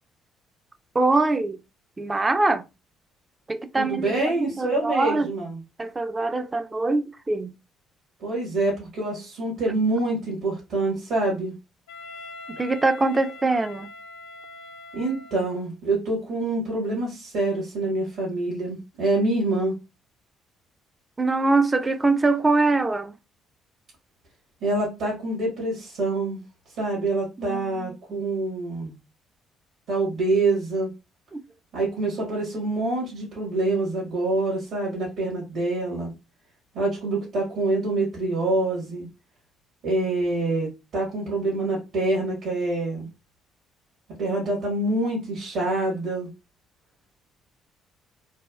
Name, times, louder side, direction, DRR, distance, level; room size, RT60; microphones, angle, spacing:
voice 1, 0.9-1.6 2.0-2.6 3.5-5.3 5.8-7.5 12.6-13.9 21.2-23.2 27.4-28.2 31.3-31.4, right 3 dB, 25° right, 0.4 m, -23 dB
voice 2, 3.7-5.6 8.2-11.5 14.9-19.8 24.6-26.4 26.8-28.9 29.9-30.9 31.7-36.1 36.7-39.0 39.8-43.1 44.2-46.3, right 2 dB, 65° right, 1.4 m, -26 dB
Wind instrument woodwind instrument, 11.9-15.7, left 3 dB, 80° left, 0.7 m, -43 dB
3.3 x 2.2 x 2.3 m
hypercardioid pair, 50°, 0 cm